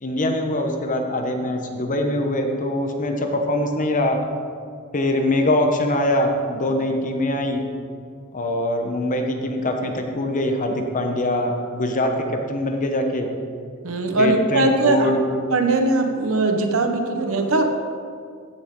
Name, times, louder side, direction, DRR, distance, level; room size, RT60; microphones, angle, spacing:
voice 1, 0.0-4.2 4.9-7.6 8.3-13.3 14.2-15.2, left 1 dB, 35° left, 4 dB, 1.0 m, -23 dB
voice 2, 13.8-15.1 15.5-17.8, right 2 dB, 70° right, 5 dB, 1.0 m, -20 dB
15.0 x 6.7 x 3.8 m, 2.2 s
head